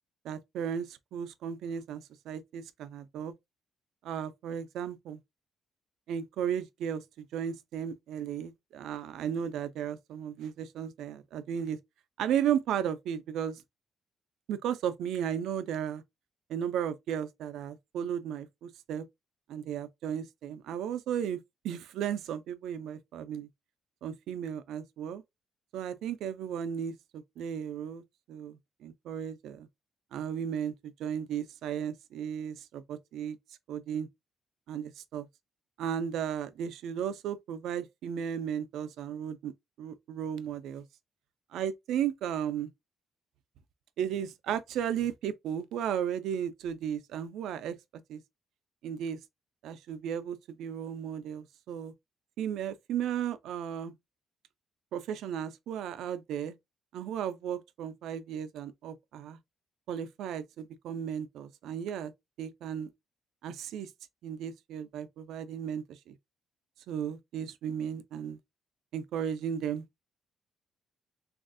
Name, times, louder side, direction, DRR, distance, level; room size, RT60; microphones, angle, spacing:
voice 1, 0.2-3.3 4.0-5.2 6.1-11.8 12.2-13.6 14.5-16.0 16.5-19.1 19.5-23.5 24.0-25.2 25.7-28.0 28.3-29.7 30.1-33.4 33.7-34.1 34.7-35.3 35.8-39.5 39.8-40.8 41.5-42.7 44.0-47.8 48.1-48.2 48.8-49.2 49.6-51.9 52.4-53.9 54.9-56.6 56.9-59.4 59.9-62.1 62.4-62.9 63.4-63.9 64.2-66.2 66.9-68.4 68.9-69.8, right 9 dB, 80° right, 0.4 m, -35 dB
3.3 x 2.4 x 2.5 m
cardioid pair, 90°, 0 cm